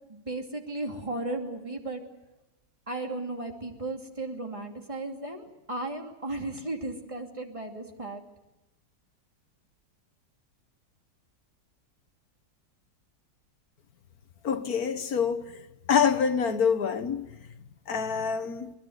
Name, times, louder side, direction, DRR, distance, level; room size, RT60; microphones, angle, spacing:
voice 1, 0.1-2.0 2.9-8.2, right 2 dB, 20° right, 2.7 m, -35 dB
voice 2, 14.4-15.5 15.9-17.3 17.9-18.7, left 6 dB, 60° left, 1.5 m, -26 dB
25.5 x 21.0 x 8.0 m
omnidirectional pair, 1.9 m